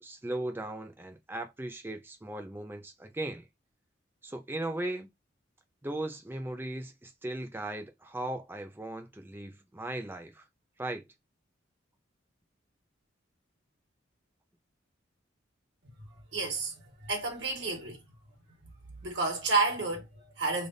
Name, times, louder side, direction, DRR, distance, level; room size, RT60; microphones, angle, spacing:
voice 1, 0.0-3.5 4.2-5.1 5.8-10.4 10.8-11.1, right 1 dB, 10° right, 0.5 m, -37 dB
voice 2, 16.1-16.7 17.0-18.0 18.6-18.7 19.0-20.7, right 3 dB, 60° right, 1.5 m, -31 dB
3.4 x 2.4 x 3.9 m
head